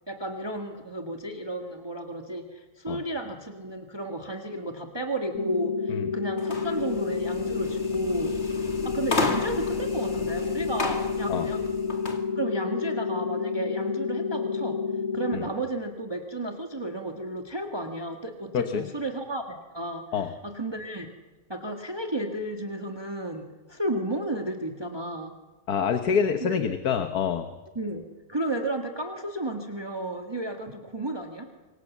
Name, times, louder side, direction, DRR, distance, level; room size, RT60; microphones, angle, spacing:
voice 1, 0.1-8.4 8.8-11.6 12.4-14.8 15.1-21.1 21.5-25.3 26.4-26.5 27.7-31.5, right 1 dB, 15° right, 3 dB, 1.6 m, -33 dB
sound 1, 5.3-15.4, left 5 dB, 60° left, 2.7 m, -29 dB
sound 2, 6.4-12.2, left 3 dB, 45° left, 2.5 m, -33 dB
voice 2, 25.7-27.5, left 7 dB, 85° left, 8 dB, 1.7 m, -26 dB
26.5 x 23.5 x 7.3 m, 1.3 s
omnidirectional pair, 1.6 m